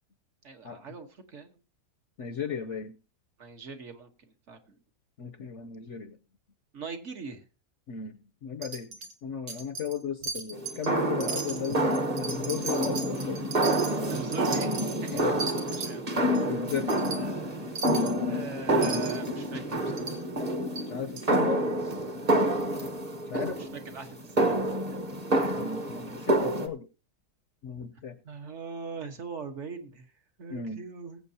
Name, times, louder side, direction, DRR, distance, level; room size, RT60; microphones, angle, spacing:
voice 1, 0.4-1.6 3.4-4.8 6.7-7.4 14.1-15.3 15.6-16.1 17.1-17.8 18.3-20.1 23.3-25.0 27.7-27.9 28.2-30.1 30.4-31.2, right 5 dB, 50° right, 6 dB, 1.5 m, -41 dB
voice 2, 2.2-3.0 5.2-6.2 7.9-8.9 9.2-13.5 15.1-15.4 16.5-17.1 20.9-21.6 23.3-23.6 25.6-26.9 27.6-28.1 30.5-30.8, left 7 dB, 60° left, 8 dB, 0.9 m, -35 dB
Wind chime, 8.6-9.1 9.5-10.0 10.2-10.9 11.2-15.9 16.3-16.4 16.7-17.2 17.8-18.2 18.8-19.3 20.0-20.2 20.8-20.9 21.2-21.3, right 4 dB, 80° right, 2.2 m, -37 dB
sound 1, 10.5-26.7, right 1 dB, 25° right, 1.1 m, -28 dB
21.0 x 8.1 x 2.8 m, 0.32 s
omnidirectional pair, 1.7 m